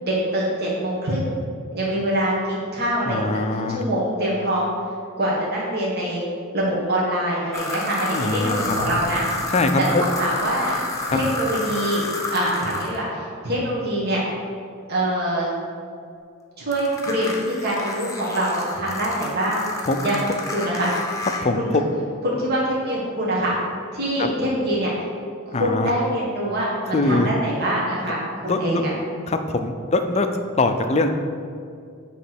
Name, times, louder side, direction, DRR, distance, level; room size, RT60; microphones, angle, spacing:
voice 1, 0.0-1.3 1.7-4.7 5.2-6.2 6.5-9.2 9.8-10.8 11.1-12.0 12.3-14.2 14.9-15.5 16.6-19.6 20.0-20.2 20.5-20.9 21.6-21.7 22.2-23.5 23.9-24.9 25.5-28.9, right 1 dB, 50° right, -6 dB, 1.4 m, -24 dB
voice 2, 3.1-3.8 8.1-8.8 9.5-10.0 11.1-11.2 19.9-20.0 21.4-21.8 24.2-24.3 25.5-25.9 26.9-27.3 28.0-28.1 28.4-28.8 29.3-31.1, left 2 dB, 30° left, 7 dB, 0.4 m, -22 dB
sound 1, 7.5-13.0 16.7-21.4, left 2 dB, 15° left, 0.8 m, -30 dB
sound 2, 8.4-12.3 13.5-13.6, left 2 dB, 65° left, 0.7 m, -39 dB
8.3 x 3.1 x 6.0 m, 2.3 s
head